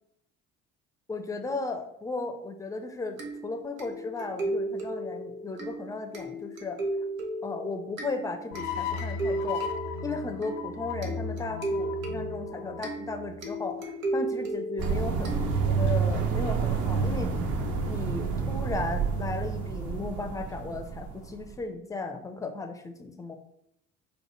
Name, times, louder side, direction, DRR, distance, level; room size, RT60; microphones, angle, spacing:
voice 1, 1.1-6.8 7.4-9.6 10.0-13.8 14.1-15.3 15.7-17.3 17.9-23.4, left 3 dB, 10° left, 6 dB, 0.4 m, -35 dB
sound 1, 3.2-15.9, right 1 dB, 85° right, 0.6 m, -35 dB
sound 2, 8.5-13.7, left 5 dB, 65° left, 0.5 m, -36 dB
sound 3, 14.8-21.6, right 5 dB, 50° right, 0.8 m, -28 dB
4.9 x 2.1 x 3.1 m, 0.77 s
figure-of-eight pair, 50°, 39 cm